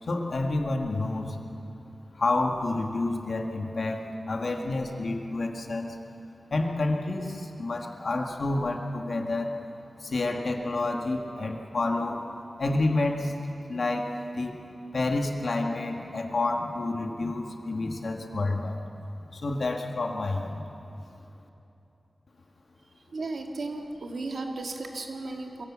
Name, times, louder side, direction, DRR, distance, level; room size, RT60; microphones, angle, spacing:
voice 1, 0.0-1.4 2.1-6.0 6.5-9.5 10.0-12.2 12.6-13.3 13.7-14.5 14.9-18.8 19.3-20.6, left 2 dB, 65° left, 2 dB, 1.8 m, -29 dB
voice 2, 23.1-25.6, right 3 dB, 80° right, 2 dB, 1.9 m, -35 dB
22.5 x 16.5 x 7.4 m, 3.0 s
wide cardioid pair, 105°, 0 cm